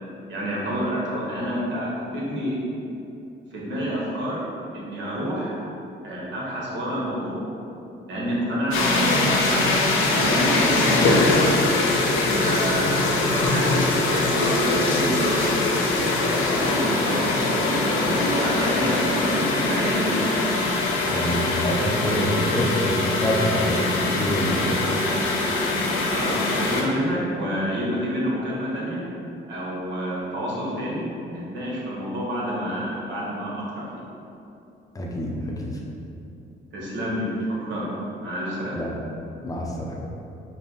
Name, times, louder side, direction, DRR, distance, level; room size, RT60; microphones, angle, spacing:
voice 1, 0.3-2.6 3.5-4.4 4.7-5.6 6.0-7.4 8.1-9.7 10.1-11.4 12.3-13.0 13.3-16.0 16.3-20.4 26.1-29.0 29.5-34.0 36.7-37.3 37.6-37.9 38.2-38.8, equal, 65° right, -6 dB, 1.5 m, -28 dB
sound 1, 8.7-26.8, left 2 dB, 80° left, 0.7 m, -22 dB
voice 2, 21.1-24.9 34.9-35.8 38.7-39.0 39.4-40.0, equal, 15° left, -2 dB, 0.7 m, -26 dB
5.4 x 2.2 x 4.1 m, 2.7 s
cardioid pair, 90°, 20 cm